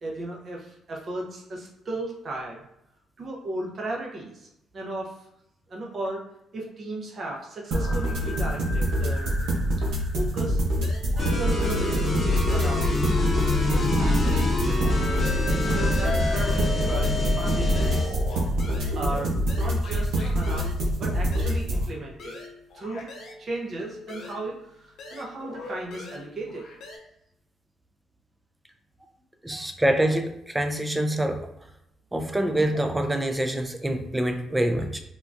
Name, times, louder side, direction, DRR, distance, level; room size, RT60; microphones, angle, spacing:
voice 1, 0.0-2.6 3.2-5.3 5.7-6.2 6.5-9.3 10.1-10.6 10.9-13.0 13.7-15.2 15.5-18.2 18.9-22.4 22.7-23.1 23.4-26.6, right 2 dB, 50° right, -2 dB, 0.8 m, -35 dB
sound 1, 7.7-21.8, equal, 90° right, 0.8 m, -25 dB
sound 2, 10.8-11.4 11.6-14.6 14.8-23.4 23.8-27.0, left 3 dB, 75° left, 0.8 m, -43 dB
sound 3, 11.2-18.1, left 2 dB, 35° left, 1.0 m, -26 dB
voice 2, 29.4-31.4 32.1-35.0, right 1 dB, 10° right, 5 dB, 0.4 m, -25 dB
3.7 x 2.3 x 2.6 m, 0.80 s
cardioid pair, 90°, 0 cm